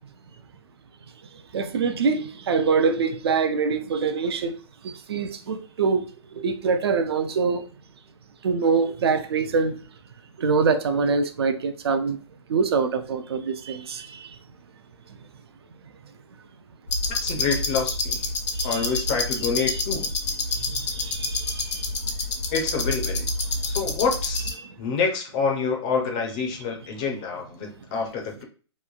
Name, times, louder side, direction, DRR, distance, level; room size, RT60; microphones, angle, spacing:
voice 1, 1.3-4.6 4.8-7.6 8.4-9.8 10.4-12.2 12.5-14.4 15.1-15.2 18.5-18.9 19.7-19.8 20.5-22.1 23.5-23.7 24.6-24.8, right 5 dB, 60° right, 0.4 m, -25 dB
sound 1, 16.9-24.5, left 3 dB, 75° left, 0.9 m, -27 dB
voice 2, 17.2-18.3 18.6-20.1 22.5-23.3 23.6-28.4, left 5 dB, 20° left, 0.4 m, -27 dB
3.0 x 2.1 x 2.3 m
hypercardioid pair, 165°, 15 cm